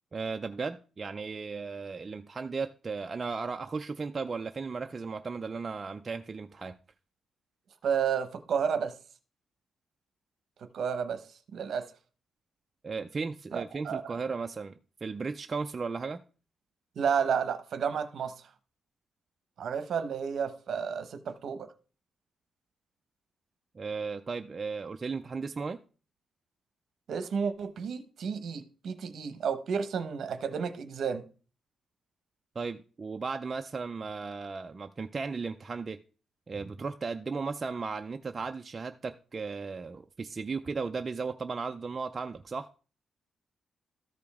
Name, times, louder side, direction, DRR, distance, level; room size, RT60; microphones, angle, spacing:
voice 1, 0.1-6.8 12.8-16.2 23.7-25.8 32.6-36.0 36.5-42.7, right 4 dB, 25° right, 0.3 m, -36 dB
voice 2, 7.8-9.0 10.6-11.2 11.5-11.9 13.5-14.0 17.0-18.3 19.6-21.7 27.1-31.3, right 7 dB, 55° right, 0.9 m, -31 dB
13.5 x 5.1 x 3.5 m
wide cardioid pair, 175°, 0 cm